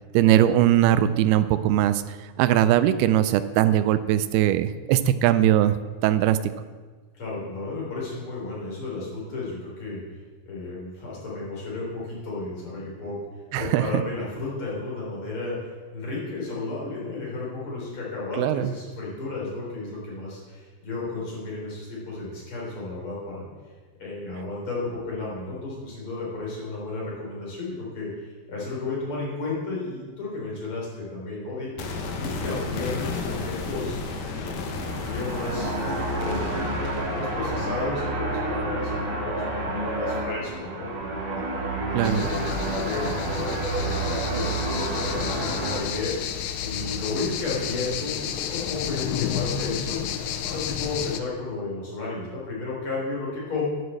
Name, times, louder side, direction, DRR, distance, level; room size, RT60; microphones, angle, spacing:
voice 1, 0.1-5.8 6.0-6.4 13.5-13.9 18.4-18.7 41.9-42.3, right 12 dB, 85° right, 13 dB, 2.3 m, -20 dB
voice 2, 7.1-10.0 10.5-13.2 13.6-23.5 24.0-36.5 37.1-43.2 43.8-46.1 46.6-53.7, left 3 dB, 30° left, -5 dB, 4.2 m, -33 dB
sound 1, 31.8-41.8 42.1-42.2, left 3 dB, 70° left, 1.8 m, -34 dB
sound 2, 34.7-45.8, right 2 dB, 65° right, 4.5 m, -29 dB
sound 3, 42.0-51.2, left 9 dB, 85° left, 2.9 m, -31 dB
9.8 x 8.0 x 7.6 m, 1.4 s
omnidirectional pair, 4.9 m